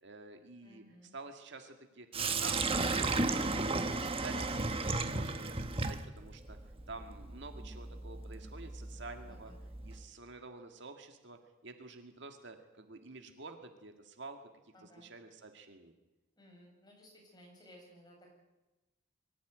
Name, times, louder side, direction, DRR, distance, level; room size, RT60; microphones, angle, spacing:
voice 1, 0.0-0.8 1.1-2.6 2.9-3.6 3.9-6.6 6.9-9.5 9.8-14.5 14.8-15.9, right 3 dB, 60° right, 6 dB, 2.0 m, -49 dB
voice 2, 0.6-1.1 9.2-9.6 14.7-15.1 16.4-18.3, equal, 20° left, 0 dB, 7.5 m, -58 dB
Sink (filling or washing), 2.1-10.0, right 3 dB, 25° right, 1.3 m, -35 dB
23.5 x 15.0 x 9.3 m, 1.1 s
head